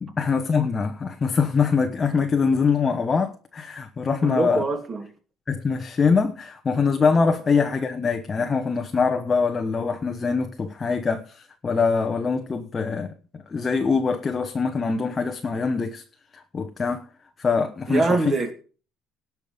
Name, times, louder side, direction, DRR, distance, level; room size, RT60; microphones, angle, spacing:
voice 1, 0.0-4.6 5.5-16.0 16.3-17.0 17.4-18.3, left 5 dB, 25° left, 1.1 m, -23 dB
voice 2, 4.2-5.1 17.9-18.5, right 3 dB, 25° right, 2.8 m, -24 dB
18.5 x 6.1 x 5.1 m
cardioid pair, 145°, 0 cm